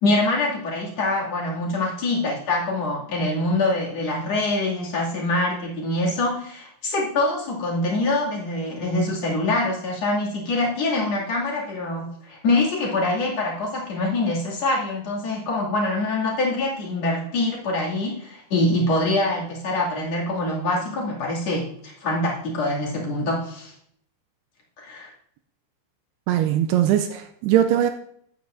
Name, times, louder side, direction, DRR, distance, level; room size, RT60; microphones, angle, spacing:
voice 1, 0.0-23.7 24.8-25.1, left 2 dB, 45° left, -4 dB, 2.9 m, -24 dB
voice 2, 26.3-27.9, right 11 dB, 85° right, 7 dB, 2.4 m, -20 dB
15.0 x 8.6 x 2.6 m, 0.67 s
omnidirectional pair, 5.1 m